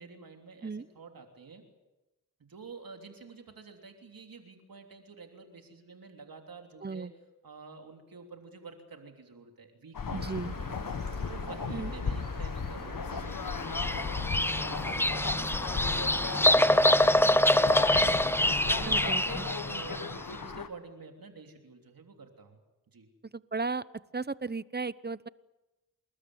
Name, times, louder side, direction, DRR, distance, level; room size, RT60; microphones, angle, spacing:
voice 1, 0.0-1.6 2.4-7.1 7.4-10.5 10.9-22.6 22.9-23.1, right 4 dB, 85° right, 4 dB, 3.3 m, -49 dB
sound 1, 9.9-20.7, left 5 dB, 75° left, 1.4 m, -36 dB
voice 2, 10.1-10.5 11.7-11.9 18.8-19.4 23.3-23.8 24.1-25.3, right 4 dB, 30° right, 18 dB, 0.8 m, -35 dB
Bird vocalization bird call bird song, 10.2-18.8, right 2 dB, 55° right, 5.8 m, -46 dB
Bird vocalization bird call bird song 2, 13.5-20.1, left 1 dB, 5° left, 0.9 m, -25 dB
29.0 x 13.5 x 9.6 m, 1.1 s
cardioid pair, 40°, 34 cm